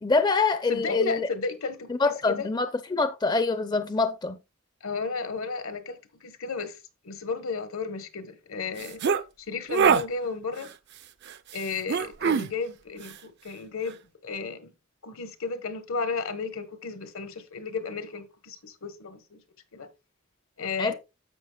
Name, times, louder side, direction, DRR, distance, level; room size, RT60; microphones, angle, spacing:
voice 1, 0.0-1.3 1.9-4.4 20.8-20.9, left 3 dB, 20° left, 0.4 m, -25 dB
voice 2, 0.7-2.5 4.8-6.8 7.0-9.0 9.5-10.7 11.5-14.0 14.2-14.7 15.0-19.4 19.7-19.9 20.6-20.9, left 4 dB, 80° left, 1.2 m, -33 dB
sound 1, 8.8-9.2 9.7-10.0 11.9-12.5, right 6 dB, 55° right, 0.5 m, -22 dB
10.5 x 7.1 x 2.3 m
head